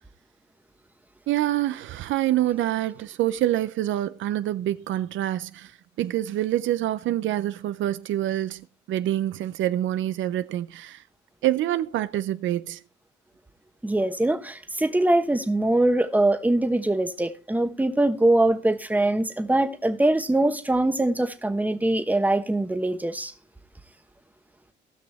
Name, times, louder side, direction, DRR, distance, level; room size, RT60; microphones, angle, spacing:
voice 1, 1.3-5.7 6.0-11.0 11.4-12.8, right 13 dB, 75° right, 0.5 m, -26 dB
voice 2, 13.8-23.3, right 1 dB, 10° right, 1.1 m, -23 dB
18.5 x 6.1 x 3.5 m
cardioid pair, 90°, 20 cm